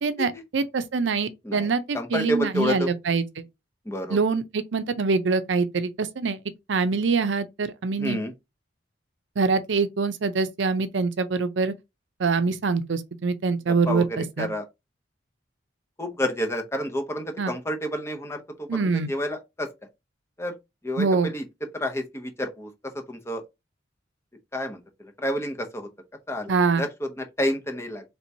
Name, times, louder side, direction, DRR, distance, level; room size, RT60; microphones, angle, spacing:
voice 1, 0.0-3.4 4.1-6.4 6.7-8.2 9.4-11.7 12.2-14.5 17.4-17.6 18.7-19.1 21.0-21.3 26.5-26.8, right 4 dB, 80° right, 0.5 m, -24 dB
voice 2, 1.9-2.8 3.9-4.2 8.0-8.3 13.9-14.0 14.4-14.6 16.0-18.4 19.1-19.7 20.4-20.5 20.8-21.0 21.3-21.4 21.8-22.7 23.1-23.4 24.5-24.8 25.2-25.9 26.3-26.9 27.4-28.0, left 1 dB, 15° left, 0.7 m, -29 dB
4.4 x 3.3 x 2.7 m
head